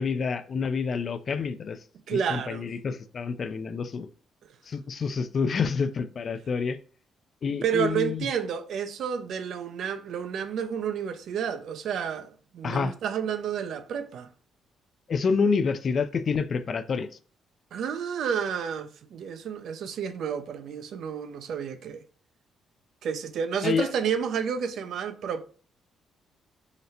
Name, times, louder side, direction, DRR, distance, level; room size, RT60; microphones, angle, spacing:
voice 1, 0.0-1.8 2.1-4.1 4.7-6.8 7.4-8.3 12.6-12.9 15.1-17.1 23.6-23.9, left 5 dB, 50° left, 0.3 m, -28 dB
voice 2, 2.1-2.7 7.6-14.3 17.7-22.0 23.0-25.4, right 7 dB, 70° right, 0.3 m, -30 dB
3.8 x 2.1 x 2.7 m
cardioid pair, 90°, 0 cm